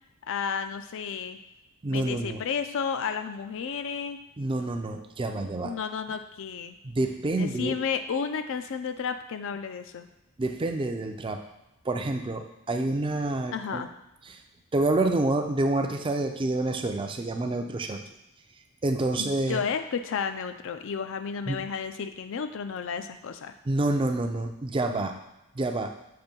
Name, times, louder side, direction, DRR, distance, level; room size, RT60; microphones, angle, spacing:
voice 1, 0.3-1.4 1.9-4.2 5.6-6.8 7.3-10.1 13.5-13.9 19.2-23.5, left 6 dB, 60° left, 9 dB, 0.4 m, -32 dB
voice 2, 1.8-2.4 4.4-5.8 6.8-7.8 10.4-11.4 11.8-13.9 14.3-14.4 14.7-18.0 18.8-19.6 21.5-21.7 23.7-25.2 25.5-25.9, right 2 dB, 25° right, 5 dB, 0.4 m, -28 dB
6.8 x 2.6 x 5.2 m, 0.93 s
head